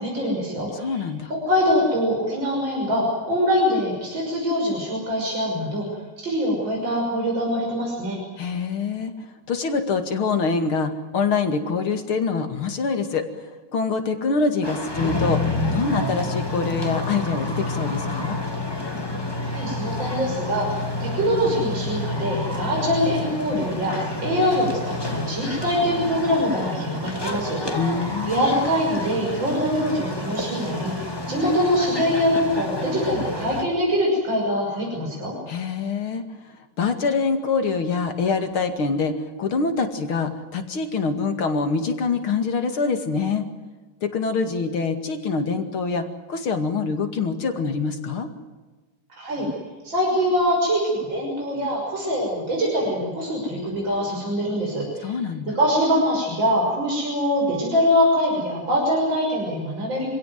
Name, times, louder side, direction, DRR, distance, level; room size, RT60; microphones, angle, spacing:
voice 1, 0.0-1.0 1.3-5.9 6.2-8.2 19.5-27.8 28.3-35.3 49.2-49.5 49.8-55.2 55.5-60.1, equal, 65° right, -2 dB, 6.9 m, -23 dB
voice 2, 0.7-1.3 8.4-9.1 9.5-13.3 13.7-15.4 15.7-18.4 27.7-28.4 35.5-36.2 36.8-43.5 44.0-48.3 55.0-55.6, left 4 dB, 80° left, 7 dB, 3.1 m, -25 dB
sound 1, 14.6-33.6, left 2 dB, 10° left, 2.5 m, -29 dB
26.0 x 17.0 x 9.4 m, 1.3 s
omnidirectional pair, 2.3 m